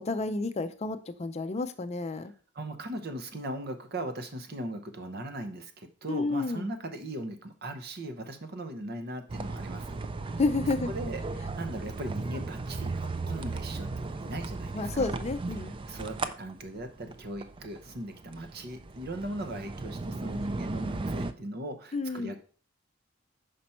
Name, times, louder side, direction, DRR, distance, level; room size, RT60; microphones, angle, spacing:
voice 1, 0.0-2.3 6.1-6.7 10.4-10.9 14.7-15.8 21.9-22.3, left 3 dB, 35° left, 9 dB, 0.5 m, -30 dB
voice 2, 2.5-10.0 10.9-15.1 15.9-22.4, right 1 dB, 55° right, 6 dB, 0.9 m, -38 dB
sound 1, 9.3-21.3, right 3 dB, 25° right, 0.4 m, -36 dB
5.6 x 5.1 x 4.3 m, 0.41 s
head